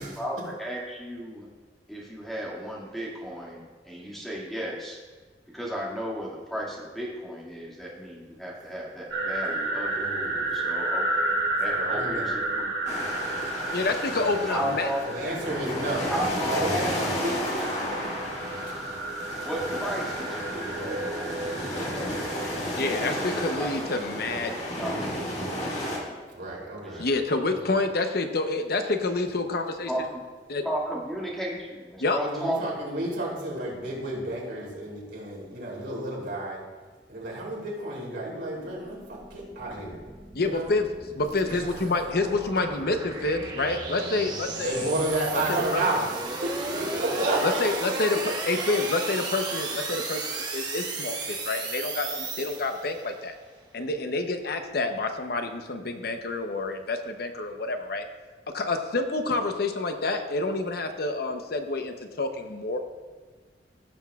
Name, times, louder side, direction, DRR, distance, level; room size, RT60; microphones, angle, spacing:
voice 1, 0.2-1.5 1.9-5.0 5.5-10.1 10.5-13.0 14.5-15.4 15.6-15.8 16.1-18.1 19.4-23.8 24.5-26.2 26.8-27.0 29.9-30.2 30.6-32.7, equal, ahead, -5 dB, 1.9 m, -35 dB
sound 1, 9.1-23.7, right 2 dB, 65° right, 1.6 m, -32 dB
voice 2, 9.9-10.7 11.6-12.3 14.2-16.1 16.5-16.9 17.2-18.9 20.7-21.1 21.5-21.9 24.1-24.4 26.3-27.1 32.2-36.6 37.1-40.0 40.4-40.7 41.5-42.0 44.6-46.1 46.4-47.6, right 1 dB, 90° right, -4 dB, 3.1 m, -32 dB
sound 2, 12.9-26.0, equal, 40° left, 1.9 m, -32 dB
voice 3, 13.7-14.9 22.8-24.5 27.0-29.9 30.5-30.6 32.0-32.2 40.3-40.9 41.1-44.8 45.5-45.8 47.4-48.2 48.5-53.3 53.7-58.1 58.5-62.8, left 3 dB, 60° left, 6 dB, 0.8 m, -28 dB
sound 3, 38.5-53.1, right 3 dB, 25° right, 1.0 m, -35 dB
16.0 x 7.1 x 2.3 m, 1.4 s
head